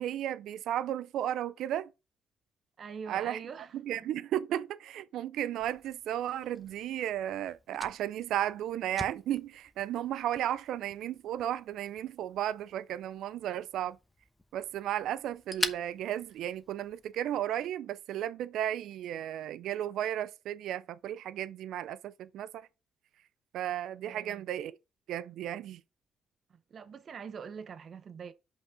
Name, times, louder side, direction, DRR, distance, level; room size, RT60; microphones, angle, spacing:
voice 1, 0.0-1.9 3.1-3.4 3.7-14.0 14.5-22.7 23.5-24.7 25.1-25.8, right 11 dB, 80° right, 0.3 m, -34 dB
voice 2, 2.8-4.1 24.1-24.4 26.5-28.3, right 6 dB, 50° right, 0.8 m, -44 dB
Fire, 5.6-17.1, left 1 dB, 10° left, 0.9 m, -45 dB
5.9 x 5.4 x 4.9 m
cardioid pair, 90°, 0 cm